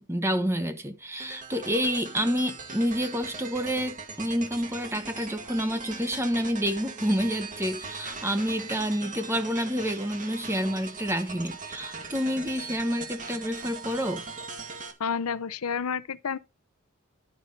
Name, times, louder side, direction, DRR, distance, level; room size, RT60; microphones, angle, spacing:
voice 1, 0.0-14.2, equal, 10° right, 1.2 m, -28 dB
sound 1, 1.2-14.9, right 4 dB, 40° right, 2.1 m, -40 dB
voice 2, 15.0-16.4, left 6 dB, 85° left, 0.6 m, -30 dB
11.5 x 5.7 x 5.3 m
head